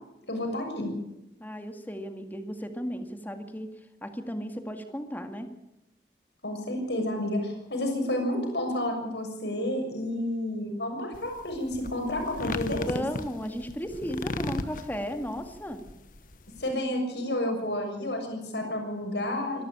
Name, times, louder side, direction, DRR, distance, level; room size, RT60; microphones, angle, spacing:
voice 1, 0.3-0.9 6.4-13.1 16.6-19.6, left 1 dB, 75° left, 3 dB, 6.9 m, -30 dB
voice 2, 1.4-3.7 4.0-5.5 12.9-15.8, equal, 10° left, 6 dB, 2.1 m, -35 dB
sound 1, 11.1-16.7, left 2 dB, 50° left, 1.2 m, -36 dB
25.5 x 12.5 x 8.9 m, 0.92 s
head